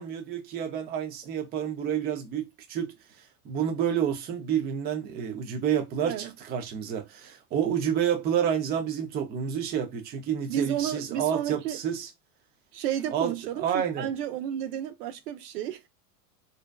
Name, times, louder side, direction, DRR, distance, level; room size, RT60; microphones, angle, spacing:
voice 1, 0.0-2.9 3.4-12.1 13.1-14.1, right 9 dB, 20° right, 0.4 m, -29 dB
voice 2, 10.5-11.8 12.7-15.9, right 10 dB, 90° right, 0.6 m, -32 dB
2.5 x 2.2 x 2.2 m
supercardioid pair, 125°, 46 cm